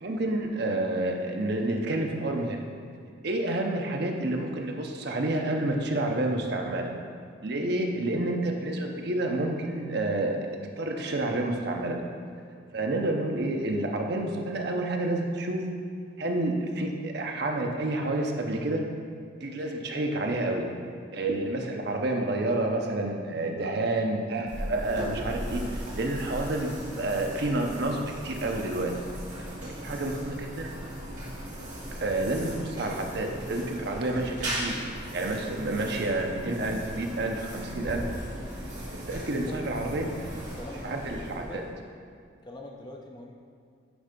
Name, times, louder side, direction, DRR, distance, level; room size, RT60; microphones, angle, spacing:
voice 1, 0.0-2.7 3.2-6.9 7.4-10.4 10.8-12.0 12.7-15.6 16.2-18.8 19.4-20.7 21.1-28.9 29.6-30.7 32.0-34.8 35.1-38.1 38.9-40.1 40.8-41.6, right 2 dB, 55° right, 2 dB, 0.7 m, -29 dB
sound 1, 24.5-41.8, equal, 40° right, 1.8 m, -38 dB
voice 2, 39.5-41.6 42.4-43.4, left 1 dB, 20° left, 1 dB, 0.5 m, -44 dB
9.5 x 3.3 x 5.2 m, 2.3 s
head